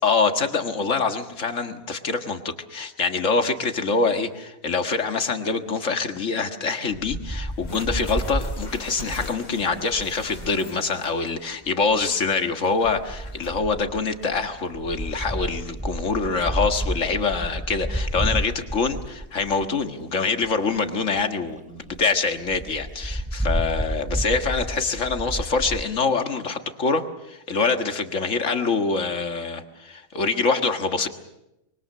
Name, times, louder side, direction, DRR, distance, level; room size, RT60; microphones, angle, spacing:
voice 1, 0.0-31.1, left 4 dB, 60° left, 6 dB, 2.0 m, -25 dB
Wind, 6.9-10.6 11.7-12.1 12.8-19.8 20.4-20.5 20.8-20.9 21.2-21.3 21.6-21.7 21.9-22.0 22.5-25.8, right 1 dB, 5° right, 0.8 m, -30 dB
sound 1, 7.4-11.5 11.8-11.9 12.7-13.5, left 2 dB, 75° left, 3.3 m, -42 dB
25.5 x 23.5 x 6.6 m, 0.89 s
omnidirectional pair, 1.5 m